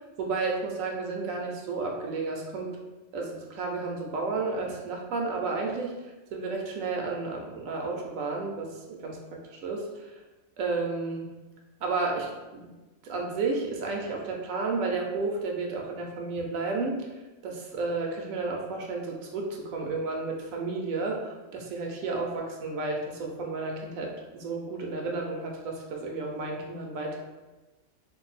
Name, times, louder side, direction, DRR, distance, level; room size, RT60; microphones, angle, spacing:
voice 1, 0.2-2.7 3.1-6.0 6.3-10.1 10.6-11.3 11.8-12.6 13.0-17.1 17.4-27.2, right 3 dB, 80° right, 0 dB, 1.0 m, -32 dB
2.6 x 2.2 x 4.0 m, 1.1 s
omnidirectional pair, 1.4 m